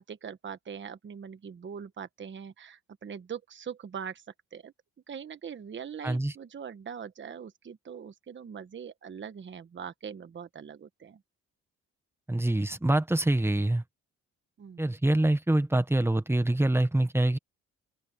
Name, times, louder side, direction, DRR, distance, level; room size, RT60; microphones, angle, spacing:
voice 1, 0.0-4.2 4.5-4.7 5.1-11.2 14.6-15.0, right 7 dB, 40° right, 1.2 m, -42 dB
voice 2, 12.3-13.8 14.8-17.4, right 1 dB, 10° right, 1.3 m, -25 dB
cardioid pair, 90°, 30 cm